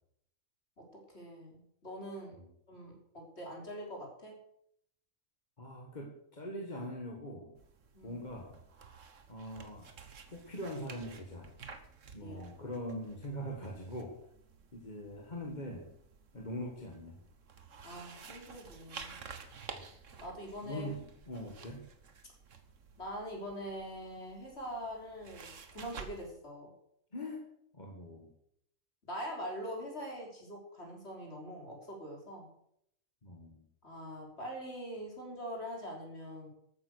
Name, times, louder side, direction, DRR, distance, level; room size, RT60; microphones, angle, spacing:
voice 1, 1.1-2.4 2.7-4.3 7.9-8.2 12.2-12.5 17.8-19.2 20.2-20.9 21.6-21.7 23.0-26.7 29.0-32.5 33.8-36.5, equal, 50° left, -1 dB, 4.2 m, -43 dB
voice 2, 5.6-7.5 8.0-8.5 9.3-9.9 10.3-11.5 12.1-14.2 14.7-15.9 16.3-17.2 19.7-19.8 20.6-21.8 27.1-27.4 27.7-28.3 33.2-33.6, equal, 35° left, 1 dB, 1.9 m, -42 dB
sound 1, 7.6-26.3, right 5 dB, 70° right, 1.6 m, -52 dB
13.5 x 9.1 x 6.6 m, 0.72 s
omnidirectional pair, 1.4 m